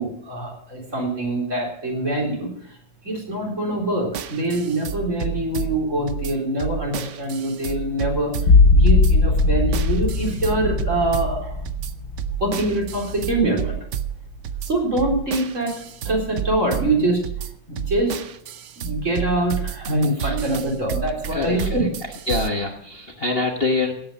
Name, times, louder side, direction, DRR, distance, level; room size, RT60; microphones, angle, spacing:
voice 1, 0.0-2.8 3.0-8.3 8.7-11.6 12.4-13.8 14.6-15.7 16.0-17.2 17.7-18.2 18.8-21.8, right 1 dB, 40° right, -1 dB, 4.3 m, -24 dB
sound 1, 4.1-22.5, right 10 dB, 65° right, 0.7 m, -31 dB
sound 2, 8.4-13.9 14.4-15.0, left 3 dB, 60° left, 2.5 m, -20 dB
voice 2, 21.3-21.9 22.3-23.9, left 3 dB, 35° left, 2 dB, 1.3 m, -25 dB
17.5 x 8.8 x 5.3 m, 0.69 s
omnidirectional pair, 2.0 m